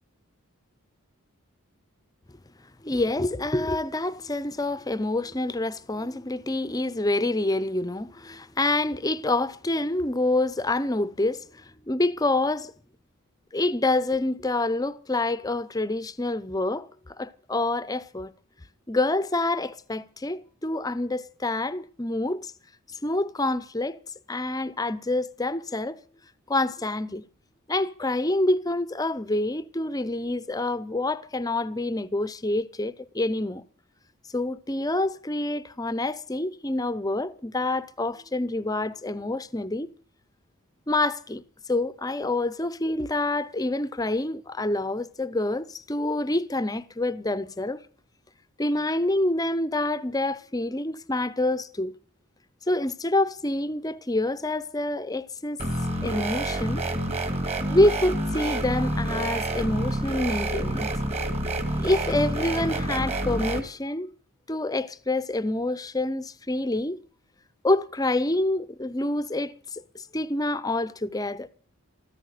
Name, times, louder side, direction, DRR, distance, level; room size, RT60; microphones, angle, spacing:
voice 1, 2.8-12.7 13.5-18.3 18.9-22.5 23.0-24.0 24.3-26.0 26.5-27.2 27.7-33.6 34.3-39.9 40.9-41.4 41.7-47.8 48.6-51.9 52.7-55.6 56.0-56.8 57.7-60.9 61.8-64.1 64.5-67.0 67.6-71.5, left 2 dB, 15° left, 0.6 m, -27 dB
sound 1, 55.6-63.6, right 1 dB, 30° right, 2.0 m, -28 dB
14.5 x 14.0 x 6.6 m
head